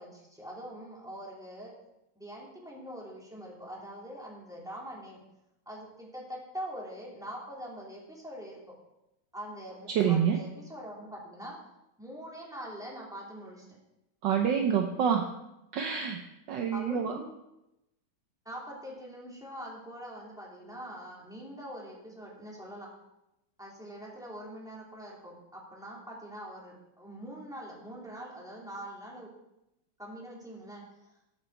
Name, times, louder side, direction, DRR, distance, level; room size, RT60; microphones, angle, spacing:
voice 1, 0.0-1.7 2.2-5.2 5.7-8.7 9.3-11.6 12.0-13.7 16.7-17.3 18.4-22.9 23.6-29.3 30.0-30.8, equal, ahead, -4 dB, 2.5 m, -43 dB
voice 2, 9.9-10.4 14.2-15.3 15.7-16.2 16.5-17.2, right 7 dB, 70° right, 4 dB, 1.2 m, -27 dB
12.5 x 5.7 x 4.6 m, 0.90 s
omnidirectional pair, 2.3 m